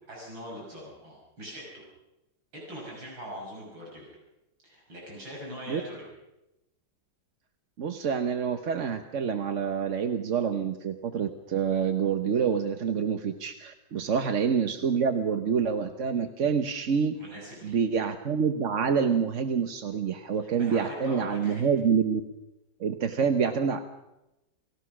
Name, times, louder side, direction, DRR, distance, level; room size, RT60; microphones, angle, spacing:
voice 1, 0.1-1.8 2.5-4.1 4.6-6.1 14.0-14.2 17.2-17.8 20.4-21.7, equal, 75° right, -3 dB, 7.5 m, -42 dB
voice 2, 7.8-17.2 17.6-22.2 22.8-23.8, right 6 dB, 45° right, 7 dB, 1.1 m, -27 dB
29.0 x 17.5 x 6.2 m, 0.94 s
omnidirectional pair, 2.1 m